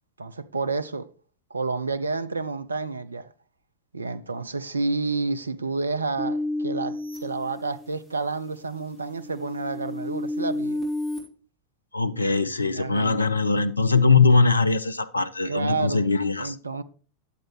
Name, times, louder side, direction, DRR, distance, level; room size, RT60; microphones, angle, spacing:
voice 1, 0.2-1.1 1.5-3.3 3.9-10.8 12.7-13.2 15.4-16.1 16.4-16.8, right 3 dB, 75° right, 0.5 m, -30 dB
sound 1, 6.2-8.1 8.7-11.2, left 1 dB, 15° right, 3.4 m, -31 dB
voice 2, 11.9-16.6, left 4 dB, 80° left, 0.5 m, -21 dB
10.5 x 7.5 x 3.1 m
figure-of-eight pair, 90°, 0 cm